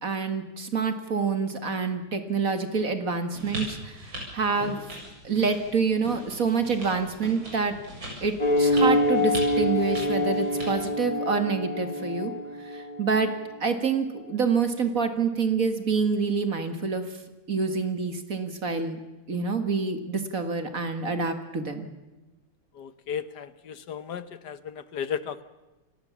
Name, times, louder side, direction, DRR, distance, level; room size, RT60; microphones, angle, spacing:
voice 1, 0.0-4.8 5.2-7.7 8.2-8.3 8.6-12.3 12.6-13.3 13.6-17.1 17.5-19.0 19.3-21.9, right 5 dB, 45° right, 8 dB, 2.2 m, -27 dB
sound 1, 3.3-10.9, equal, 85° right, 8.3 m, -40 dB
sound 2, 8.4-13.3, left 1 dB, 20° left, 2.4 m, -25 dB
voice 2, 22.7-25.4, left 8 dB, 60° left, 14 dB, 1.5 m, -35 dB
29.0 x 18.0 x 7.3 m, 1.1 s
omnidirectional pair, 2.1 m